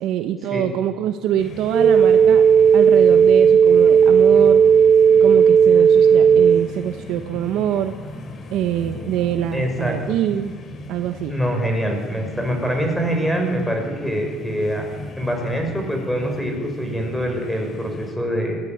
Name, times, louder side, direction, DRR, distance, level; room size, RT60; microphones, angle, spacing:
voice 1, 0.0-2.4 2.7-4.6 5.2-7.9 8.5-10.5 10.9-11.4, right 11 dB, 75° right, 8 dB, 1.2 m, -24 dB
sound 1, 1.4-18.1, left 2 dB, 40° left, 3.3 m, -37 dB
sound 2, 1.7-6.7, right 7 dB, 35° right, 0.8 m, -13 dB
voice 2, 9.5-10.0 11.3-14.9 15.2-18.6, equal, 5° left, 3 dB, 6.0 m, -24 dB
21.5 x 15.0 x 9.6 m, 1.5 s
cardioid pair, 110°, 0 cm